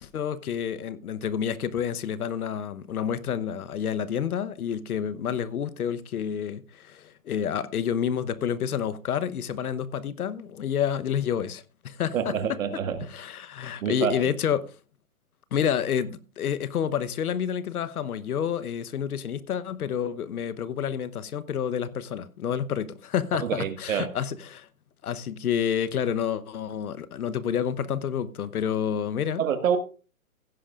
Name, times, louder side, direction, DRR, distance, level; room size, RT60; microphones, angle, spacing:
voice 1, 0.0-12.6 13.1-14.7 15.5-24.7 25.0-29.4, left 8 dB, 85° left, 1.0 m, -29 dB
voice 2, 12.1-13.1 13.8-14.3 23.4-24.1 29.4-29.8, right 8 dB, 65° right, 1.7 m, -27 dB
16.0 x 10.0 x 2.4 m
hypercardioid pair, 160°, 43 cm